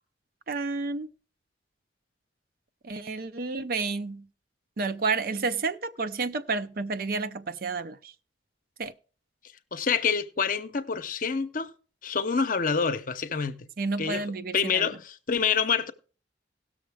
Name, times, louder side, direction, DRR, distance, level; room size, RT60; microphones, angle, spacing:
voice 1, 0.5-1.1 2.8-4.3 4.8-8.1 8.8-8.9 13.8-14.9, right 4 dB, 55° right, 0.5 m, -30 dB
voice 2, 9.7-11.7 12.0-13.7 14.0-14.2 14.5-15.9, left 6 dB, 50° left, 0.7 m, -27 dB
17.5 x 6.4 x 3.4 m
head